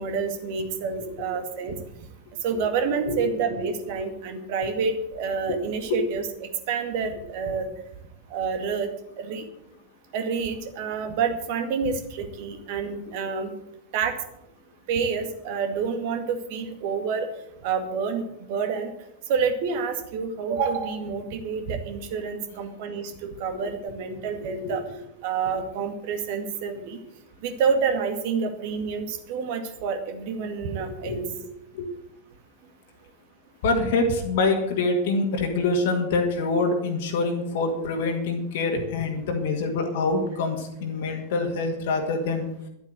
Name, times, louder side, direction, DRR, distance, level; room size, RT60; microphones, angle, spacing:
voice 1, 0.0-1.8 2.4-7.7 8.3-8.9 9.2-9.4 10.1-13.5 13.9-14.2 14.9-17.3 17.6-18.9 19.3-24.8 25.2-27.0 27.4-31.2, right 5 dB, 50° right, 6 dB, 2.1 m, -28 dB
voice 2, 3.0-3.4 5.5-5.6 23.5-23.6 24.6-24.8 31.0-31.3 31.7-31.9 33.6-42.5, left 3 dB, 55° left, 3 dB, 2.0 m, -25 dB
11.5 x 9.1 x 7.8 m, 0.82 s
figure-of-eight pair, 90°, 0 cm